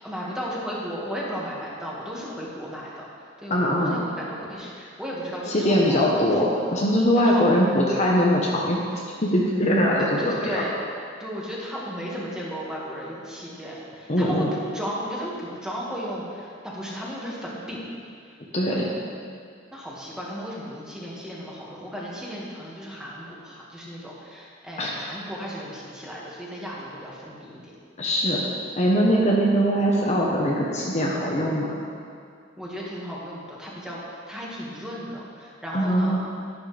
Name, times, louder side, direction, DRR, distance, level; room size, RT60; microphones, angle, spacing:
voice 1, 0.0-6.4 7.2-7.5 10.0-10.8 11.2-17.8 18.7-19.0 19.7-27.7 32.6-36.2, equal, 5° right, -6 dB, 2.0 m, -35 dB
voice 2, 3.5-4.0 5.5-8.8 9.2-10.6 14.1-14.5 18.5-18.9 24.8-24.9 28.0-28.4 28.8-31.8 35.7-36.3, equal, 35° left, -3 dB, 1.1 m, -21 dB
11.5 x 11.5 x 3.5 m, 2.3 s
head